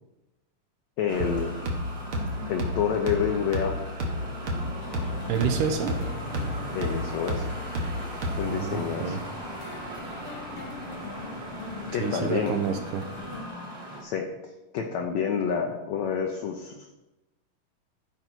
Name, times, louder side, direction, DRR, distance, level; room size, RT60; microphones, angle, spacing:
voice 1, 1.0-1.6 2.5-3.8 6.7-7.5 8.4-9.2 11.9-12.7 14.0-14.3 14.7-16.9, left 7 dB, 75° left, 2 dB, 1.7 m, -28 dB
sound 1, 1.1-14.0, right 1 dB, 20° right, 1.2 m, -39 dB
sound 2, 1.2-8.7, left 1 dB, 55° right, 1.6 m, -32 dB
sound 3, 4.8-13.4, left 4 dB, 90° left, 1.2 m, -42 dB
voice 2, 5.3-6.0 8.5-9.2 12.0-13.1, right 7 dB, 80° right, 4 dB, 2.2 m, -28 dB
12.5 x 5.2 x 4.5 m, 1.0 s
omnidirectional pair, 3.9 m